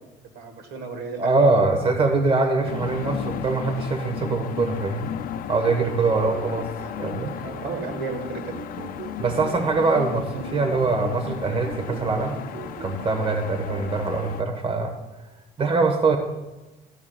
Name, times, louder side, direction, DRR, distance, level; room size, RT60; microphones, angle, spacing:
voice 1, 0.3-1.3 7.3-8.6, right 4 dB, 70° right, 6 dB, 1.4 m, -33 dB
voice 2, 1.2-5.1 5.5-6.7 7.0-7.3 9.2-12.4 12.8-14.9 15.6-16.2, right 3 dB, 30° right, 5 dB, 1.2 m, -23 dB
sound 1, 2.6-14.4, left 10 dB, 55° left, 0.4 m, -35 dB
sound 2, 5.6-13.9, right 6 dB, 55° right, 0.7 m, -39 dB
14.5 x 10.5 x 2.3 m, 1.1 s
cardioid pair, 110°, 17 cm